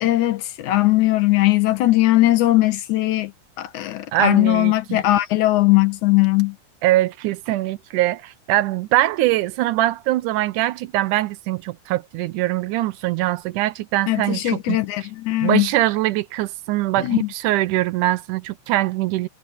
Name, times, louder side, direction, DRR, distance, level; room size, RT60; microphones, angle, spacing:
voice 1, 0.0-3.3 3.6-6.6 14.1-15.7 17.0-17.3, left 17 dB, 75° left, 2.5 m, -19 dB
voice 2, 4.1-5.0 6.8-14.8 15.4-19.3, right 16 dB, 85° right, 2.2 m, -22 dB
omnidirectional pair, 3.6 m